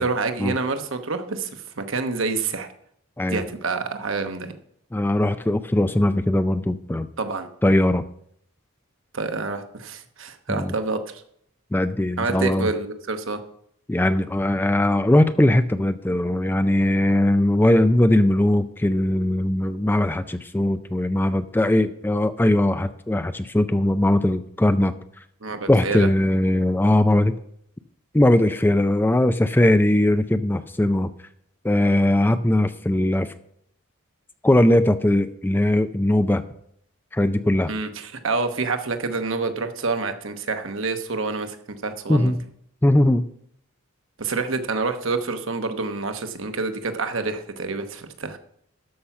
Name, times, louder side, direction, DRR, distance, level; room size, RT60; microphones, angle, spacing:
voice 1, 0.0-2.7 3.3-4.5 7.2-7.5 9.1-11.2 12.2-13.4 25.4-26.1 37.7-41.6 41.8-42.3 44.2-48.4, right 3 dB, 60° right, 7 dB, 1.0 m, -27 dB
voice 2, 4.9-7.1 7.6-8.0 10.5-10.7 11.7-12.7 13.9-24.9 25.7-27.3 28.1-31.1 31.6-33.3 34.4-36.4 37.1-37.7 42.1-42.4 42.8-43.2, left 1 dB, 10° left, 11 dB, 0.3 m, -20 dB
13.0 x 5.7 x 5.8 m, 0.70 s
head